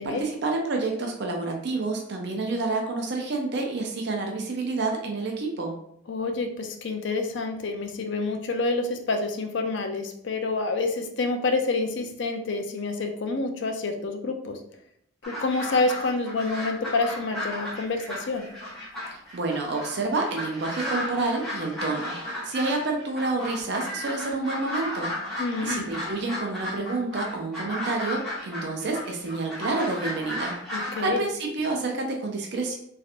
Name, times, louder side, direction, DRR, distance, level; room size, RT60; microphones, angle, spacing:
voice 1, 0.0-5.7 19.1-32.8, right 3 dB, 55° right, 1 dB, 0.4 m, -29 dB
voice 2, 6.1-14.6 15.3-18.5 25.4-25.9 30.7-31.2, left 3 dB, 60° left, 5 dB, 0.4 m, -28 dB
sound 1, 15.2-31.0, left 1 dB, ahead, 0.9 m, -34 dB
3.2 x 2.8 x 2.4 m, 0.71 s
head